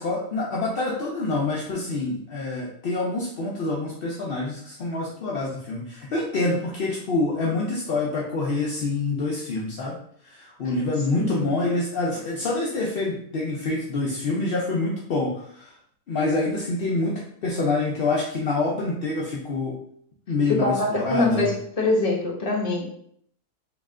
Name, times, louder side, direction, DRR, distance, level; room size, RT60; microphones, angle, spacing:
voice 1, 0.0-10.0 10.2-15.7 16.1-19.8 20.3-21.5, left 2 dB, 60° left, -4 dB, 0.6 m, -26 dB
voice 2, 11.2-11.5 20.5-22.9, left 2 dB, 30° left, -3 dB, 0.8 m, -24 dB
3.2 x 2.9 x 3.6 m, 0.66 s
omnidirectional pair, 1.7 m